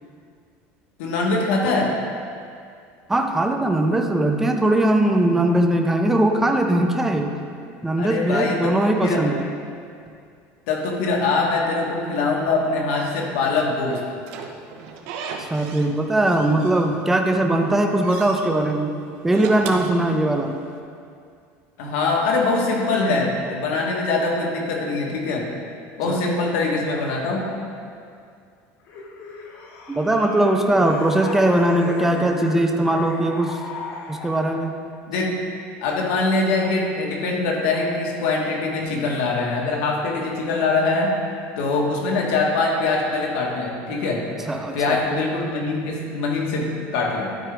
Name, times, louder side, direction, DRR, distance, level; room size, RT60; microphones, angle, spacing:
voice 1, 1.0-2.0 8.0-9.3 10.7-14.0 21.8-25.5 26.0-27.5 35.1-35.4 35.8-41.2 41.6-44.2 44.7-47.3, left 3 dB, 80° left, -1 dB, 1.5 m, -23 dB
voice 2, 3.1-7.3 7.8-9.5 15.4-19.0 19.2-20.6 26.1-26.2 29.9-33.6 34.1-34.7 44.5-45.0, right 1 dB, 5° right, 3 dB, 0.4 m, -20 dB
Slam / Squeak, 13.9-15.9 16.2-17.2 17.6-18.5 19.2-20.7, right 5 dB, 65° right, 0.7 m, -37 dB
sound 1, 28.9-34.7, left 3 dB, 50° left, 1.0 m, -36 dB
12.0 x 4.9 x 3.4 m, 2.3 s
cardioid pair, 175°, 6 cm